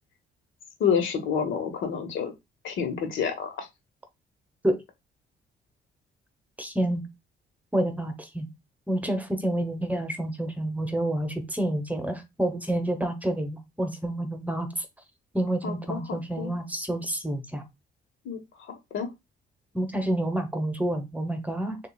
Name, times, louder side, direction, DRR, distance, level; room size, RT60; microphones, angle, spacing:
voice 1, 0.8-2.3 2.6-3.7 15.6-16.5 18.2-18.4 18.7-19.1, left 7 dB, 75° left, 1.1 m, -29 dB
voice 2, 6.6-7.0 7.7-8.5 8.9-14.9 15.3-17.6 19.7-21.8, right 1 dB, 10° right, 0.9 m, -28 dB
6.6 x 2.4 x 2.3 m
cardioid pair, 90°, 20 cm